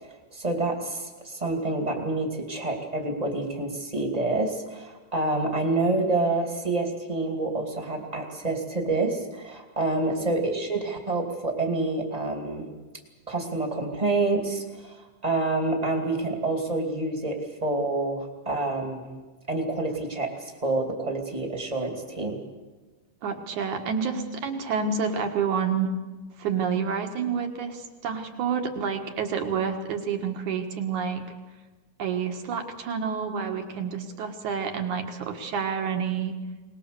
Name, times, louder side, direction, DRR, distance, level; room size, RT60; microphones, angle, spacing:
voice 1, 0.3-12.7 13.3-19.2 19.5-22.4, right 2 dB, 15° right, 2 dB, 1.6 m, -28 dB
voice 2, 23.2-25.9 26.4-31.2 32.0-36.4, right 6 dB, 60° right, 4 dB, 2.6 m, -29 dB
23.0 x 20.0 x 6.8 m, 1.3 s
omnidirectional pair, 4.5 m